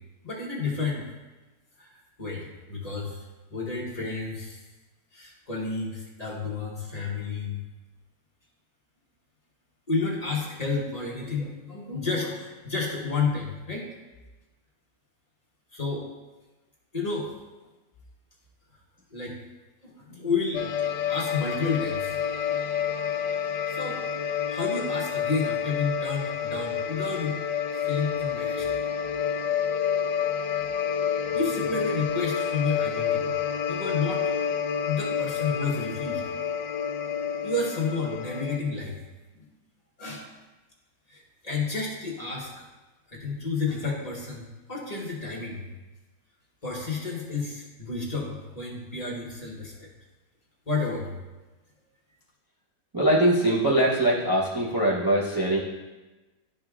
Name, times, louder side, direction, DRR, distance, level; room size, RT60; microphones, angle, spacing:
voice 1, 0.2-1.0 1.8-1.9 2.2-4.6 5.1-7.6 9.9-13.9 15.7-16.1 16.9-17.3 19.1-19.4 19.8-20.7 21.1-22.2 23.7-24.0 24.5-27.4 27.8-28.7 31.3-33.3 33.7-34.3 34.9-36.2 37.4-39.0 40.0-40.3 41.1-42.7 43.1-45.7 46.6-49.9 50.7-51.2, left 4 dB, 25° left, -4 dB, 1.1 m, -31 dB
sound 1, 20.5-38.6, left 7 dB, 85° left, 1.2 m, -29 dB
voice 2, 52.9-55.6, right 1 dB, 30° right, -6 dB, 0.4 m, -23 dB
11.5 x 5.1 x 2.4 m, 1.1 s
omnidirectional pair, 1.9 m